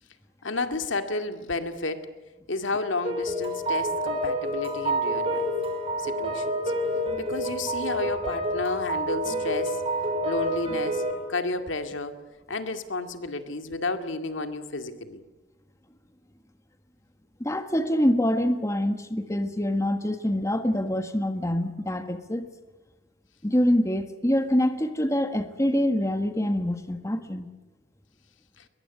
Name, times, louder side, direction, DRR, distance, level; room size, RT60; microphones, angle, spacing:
voice 1, 0.4-2.1 2.5-5.5 6.0-6.7 7.2-9.8 10.2-12.2 12.5-15.2 28.6-28.7, left 3 dB, 85° left, 8 dB, 2.1 m, -31 dB
sound 1, 3.0-11.1, right 1 dB, 30° right, 6.3 m, -28 dB
voice 2, 17.4-22.5 23.4-27.5, left 1 dB, 15° left, 8 dB, 1.4 m, -25 dB
23.0 x 21.5 x 9.6 m, 1.1 s
head